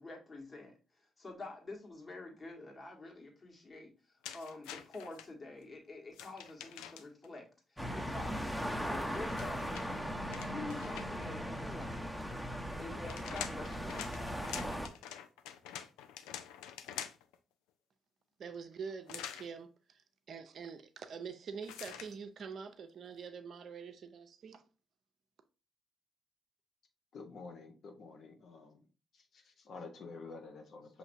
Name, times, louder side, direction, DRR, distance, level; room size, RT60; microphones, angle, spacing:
voice 1, 0.0-9.7 10.4-12.2 12.7-14.6, left 2 dB, 40° left, 1.6 m, -48 dB
sound 1, 4.2-5.3 6.1-7.3 9.1-11.3 12.7-17.4 19.1-19.5 21.6-22.1, left 10 dB, 85° left, 0.3 m, -46 dB
sound 2, 7.8-14.9, equal, ahead, 0.8 m, -38 dB
voice 2, 18.4-24.6, right 6 dB, 60° right, 0.5 m, -45 dB
voice 3, 27.1-28.8 29.1-31.0, left 4 dB, 65° left, 0.9 m, -49 dB
5.9 x 2.8 x 2.6 m
hypercardioid pair, 45°, 0 cm